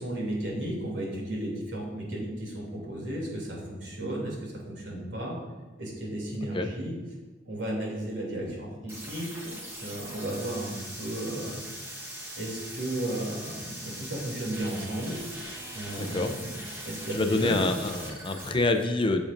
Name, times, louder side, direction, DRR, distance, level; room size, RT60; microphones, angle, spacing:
voice 1, 0.0-5.4 5.8-6.9 7.4-9.5 9.8-11.6 12.4-15.2 15.7-17.7, right 1 dB, 70° right, -3 dB, 2.8 m, -34 dB
sound 1, 8.9-18.5, right 1 dB, 15° right, 1.2 m, -41 dB
voice 2, 16.0-16.3 16.8-19.2, left 2 dB, 25° left, 6 dB, 0.5 m, -27 dB
14.0 x 7.1 x 2.6 m, 1.3 s
head